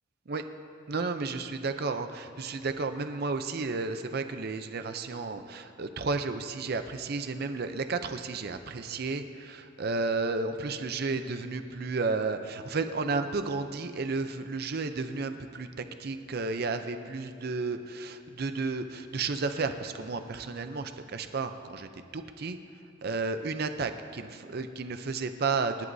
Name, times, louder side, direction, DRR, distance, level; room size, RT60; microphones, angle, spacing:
voice 1, 0.9-15.7 16.0-22.6 23.0-25.9, right 3 dB, 50° right, 8 dB, 0.5 m, -32 dB
26.5 x 11.0 x 2.7 m, 2.7 s
head